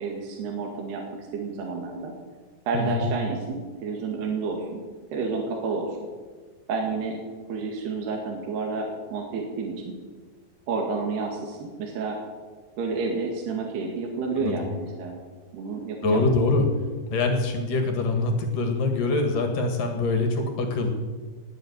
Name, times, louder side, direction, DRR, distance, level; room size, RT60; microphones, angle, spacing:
voice 1, 0.0-2.1 2.7-4.8 5.1-5.9 6.7-7.2 7.5-9.9 10.7-12.2 12.8-15.2 15.5-16.2, right 4 dB, 65° right, 0 dB, 3.9 m, -30 dB
voice 2, 2.7-3.1 14.4-14.6 16.0-16.7 17.1-20.9, left 3 dB, 55° left, 5 dB, 2.9 m, -24 dB
20.0 x 7.7 x 9.5 m, 1.4 s
omnidirectional pair, 5.4 m